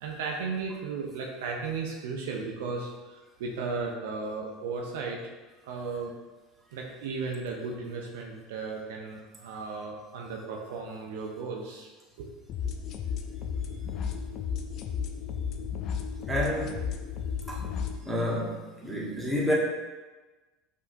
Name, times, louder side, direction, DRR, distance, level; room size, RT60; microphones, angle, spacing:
voice 1, 0.0-5.2 5.6-6.1 6.7-11.9 12.2-12.3, right 4 dB, 70° right, 0 dB, 0.5 m, -35 dB
sound 1, 12.5-18.0, left 7 dB, 50° left, 0.4 m, -33 dB
voice 2, 16.3-16.9 17.5-17.6 18.0-19.5, equal, 10° right, -5 dB, 1.2 m, -29 dB
5.9 x 2.8 x 2.6 m, 1.2 s
hypercardioid pair, 75°, 0 cm